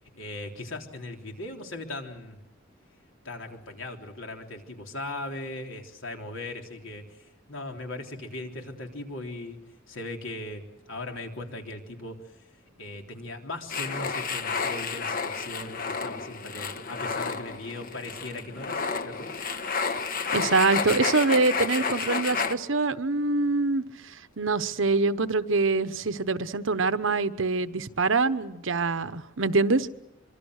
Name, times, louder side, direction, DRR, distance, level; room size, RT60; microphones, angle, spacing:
voice 1, 0.0-2.4 3.2-9.6 9.9-12.5 12.8-19.3, left 2 dB, 75° left, 3 dB, 3.6 m, -39 dB
sound 1, 13.7-22.5, left 5 dB, 45° left, 1.3 m, -31 dB
voice 2, 20.3-29.9, right 3 dB, 75° right, 12 dB, 1.1 m, -25 dB
25.5 x 24.0 x 6.6 m, 0.93 s
head